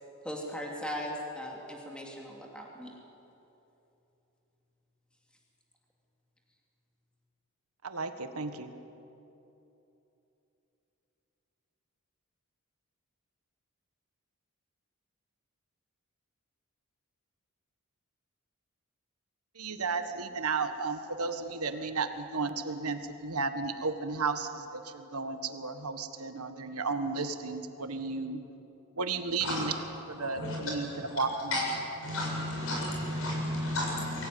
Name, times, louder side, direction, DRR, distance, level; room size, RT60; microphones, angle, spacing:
voice 1, 0.2-2.9, equal, 5° left, -1 dB, 2.8 m, -38 dB
voice 2, 7.8-8.7 19.5-28.4 29.0-29.7 30.1-31.6, right 4 dB, 85° right, 8 dB, 1.6 m, -33 dB
voice 3, 32.0-34.3, left 1 dB, 65° left, -2 dB, 7.6 m, -32 dB
23.5 x 16.5 x 9.4 m, 3.0 s
head